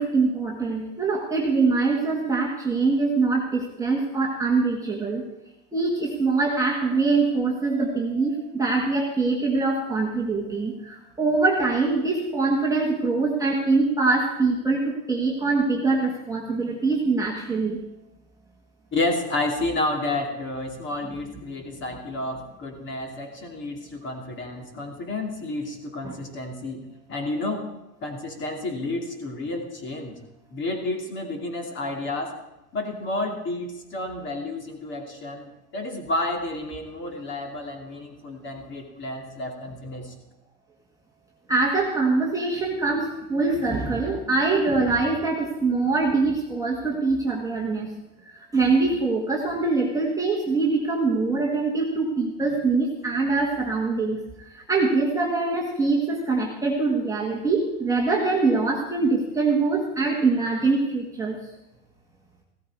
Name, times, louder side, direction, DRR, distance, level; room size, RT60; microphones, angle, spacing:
voice 1, 0.0-5.2 5.7-17.8 26.0-26.2 41.5-47.9 48.3-61.4, right 3 dB, 5° right, -3 dB, 1.9 m, -23 dB
voice 2, 18.9-27.7 28.0-30.2 30.5-32.3 32.7-40.1, left 2 dB, 25° left, 3 dB, 2.7 m, -30 dB
16.0 x 13.5 x 4.7 m, 0.92 s
supercardioid pair, 145°, 48 cm